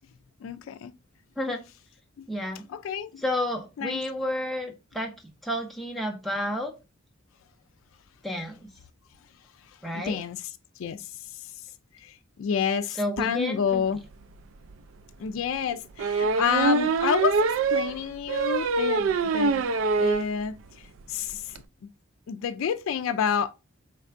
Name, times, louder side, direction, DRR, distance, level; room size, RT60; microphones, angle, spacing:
voice 1, 0.4-0.9 2.2-2.3 2.7-3.2 3.8-4.0 9.9-10.4 10.8-11.5 12.0-14.0 15.2-19.6 19.9-21.9 22.3-23.5, left 7 dB, 85° left, 0.3 m, -29 dB
voice 2, 2.3-2.7 3.2-5.1 5.4-6.7 8.2-8.7 9.8-10.2 13.0-13.8, left 1 dB, ahead, 0.6 m, -30 dB
sound 1, 14.2-14.3 14.7-14.8 16.0-20.3 20.7-20.8 21.0-21.1 21.3-21.6, right 4 dB, 80° right, 0.4 m, -24 dB
4.4 x 3.2 x 2.5 m
head